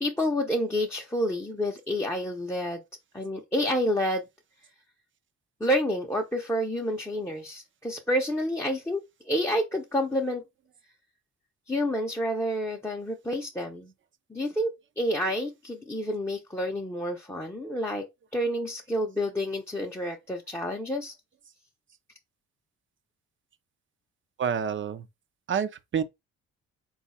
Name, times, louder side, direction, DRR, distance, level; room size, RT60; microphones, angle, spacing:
voice 1, 0.0-2.8 3.1-4.2 5.6-10.4 11.7-13.9 14.3-18.1 18.3-21.1, equal, 10° left, 0.7 m, -29 dB
voice 2, 24.4-25.0 25.5-26.0, right 7 dB, 40° right, 0.6 m, -28 dB
3.9 x 2.4 x 4.1 m
cardioid pair, 90°, 30 cm